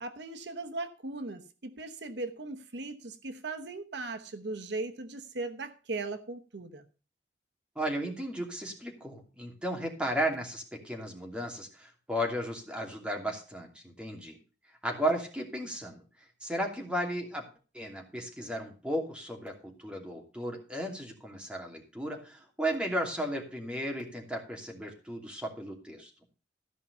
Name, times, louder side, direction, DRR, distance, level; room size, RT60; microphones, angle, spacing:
voice 1, 0.0-6.8, right 3 dB, 75° right, 1.0 m, -38 dB
voice 2, 7.7-14.4 14.8-16.0 16.4-17.4 17.7-26.1, right 1 dB, 5° right, 2.7 m, -34 dB
14.0 x 5.6 x 6.8 m
head